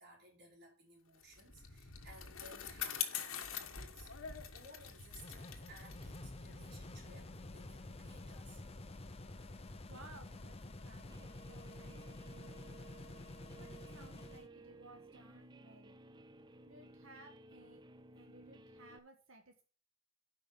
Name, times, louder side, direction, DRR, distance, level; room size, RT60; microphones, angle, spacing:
voice 1, 0.0-8.6, right 1 dB, 55° right, 3.9 m, -59 dB
Bicycle, 1.2-7.9, left 8 dB, 90° left, 1.4 m, -45 dB
sound 1, 5.1-14.5, left 2 dB, 30° left, 0.7 m, -50 dB
voice 2, 9.9-10.5 10.8-12.9 13.5-16.0 16.6-17.8 18.1-19.6, right 2 dB, 85° right, 1.6 m, -59 dB
Guitar, 11.1-19.0, right 2 dB, 20° right, 0.5 m, -57 dB
8.8 x 5.5 x 5.5 m
head